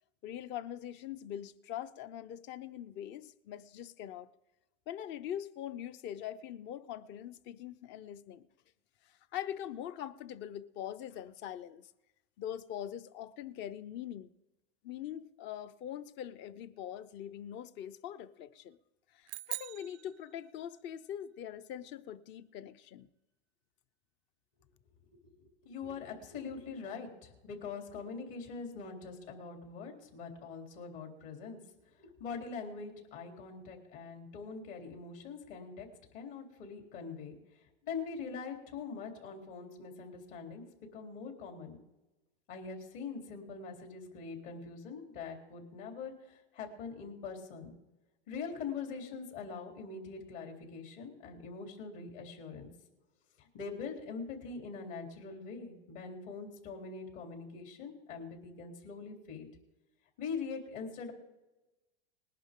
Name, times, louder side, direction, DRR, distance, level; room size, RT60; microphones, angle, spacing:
voice 1, 0.2-4.3 4.9-8.5 9.1-11.9 12.4-14.3 14.8-18.8 19.1-23.1, left 10 dB, 35° left, 0.7 m, -43 dB
sound 1, 19.3-20.9, right 18 dB, 80° right, 0.5 m, -43 dB
voice 2, 25.0-31.6 32.0-35.9 36.1-37.4 37.8-40.6 40.9-41.8 42.5-47.7 48.3-52.7 53.4-59.5 60.2-61.1, left 5 dB, 55° left, 3.6 m, -43 dB
20.0 x 11.0 x 3.8 m
hypercardioid pair, 130°, 33 cm